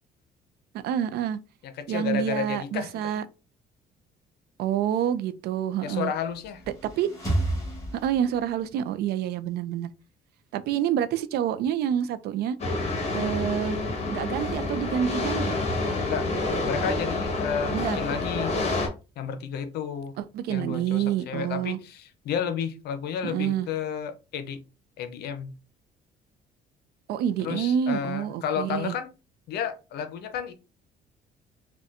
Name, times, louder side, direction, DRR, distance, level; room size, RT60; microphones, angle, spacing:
voice 1, 0.8-1.4 1.9-3.2 4.6-6.1 7.0-7.1 8.0-9.9 10.5-12.6 13.1-13.8 14.1-15.5 17.7-18.0 20.2-21.8 23.2-23.7 27.1-28.9, right 9 dB, 70° right, 0.4 m, -27 dB
voice 2, 1.6-3.2 5.8-6.6 16.1-16.3 16.6-18.5 19.2-20.2 20.5-24.6 25.0-25.5 27.4-29.1 29.5-30.5, left 7 dB, 70° left, 0.6 m, -32 dB
sound 1, 6.3-8.7, right 1 dB, 20° left, 1.6 m, -31 dB
sound 2, 12.6-18.9, left 2 dB, 40° left, 1.1 m, -28 dB
4.1 x 2.2 x 2.5 m
cardioid pair, 110°, 17 cm